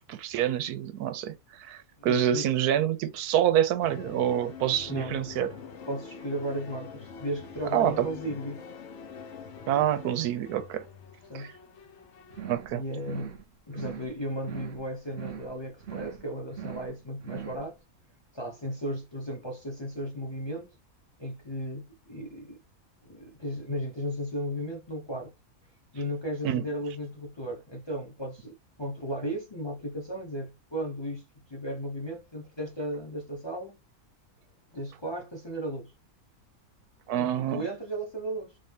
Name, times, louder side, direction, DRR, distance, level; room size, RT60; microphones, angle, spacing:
voice 1, 0.1-5.5 7.7-8.1 9.7-10.9 11.3-11.5 12.5-12.8 26.4-26.6 37.1-37.6, right 10 dB, 90° right, 1.1 m, -27 dB
voice 2, 2.0-2.5 4.9-5.2 5.8-8.6 11.3-11.6 12.7-13.4 13.7-17.7 18.3-20.7 21.2-22.6 23.0-25.3 25.9-33.8 34.7-35.9 37.1-38.6, equal, 20° left, 0.9 m, -35 dB
sound 1, 3.8-12.4, left 5 dB, 55° left, 0.9 m, -45 dB
sound 2, 12.3-12.7 13.0-13.4 13.7-14.1 14.4-14.8 15.1-15.5 15.8-16.2 16.5-16.9 17.2-17.6, right 9 dB, 50° right, 0.8 m, -40 dB
3.7 x 2.7 x 3.5 m
omnidirectional pair, 1.6 m